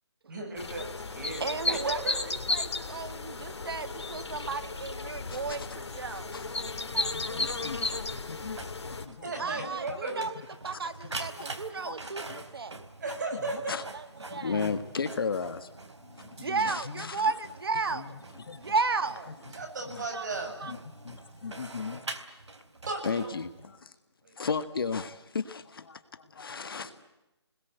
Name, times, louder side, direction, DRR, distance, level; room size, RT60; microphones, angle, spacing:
voice 1, 0.3-0.8 1.2-1.4 1.7-2.3 9.2-10.2 13.0-13.8 19.5-20.5 22.9-23.3 24.2-24.3, right 3 dB, 40° right, 7.8 m, -35 dB
sound 1, 0.6-9.1, left 2 dB, 70° left, 3.4 m, -34 dB
voice 2, 1.4-2.0 2.5-6.3 6.9-7.5 9.4-12.8 13.9-14.6 16.4-18.2 18.6-19.3 20.1-20.2 20.6-20.7, right 4 dB, 60° right, 1.9 m, -34 dB
voice 3, 5.3-5.8 6.0-8.0 8.3-8.6 8.9-9.1 9.4-10.0 10.7-11.5 11.8-12.0 12.3-12.5 13.4-13.8 14.3-15.7 16.0-17.3 17.9-18.7 19.3-19.6 19.9-20.0 20.6-20.8 21.0-22.0 23.0-24.0 24.4-27.0, left 5 dB, 55° left, 1.7 m, -36 dB
Printer, 8.4-23.8, right 3 dB, 90° right, 3.7 m, -45 dB
30.0 x 21.0 x 8.2 m
hypercardioid pair, 165°, 14 cm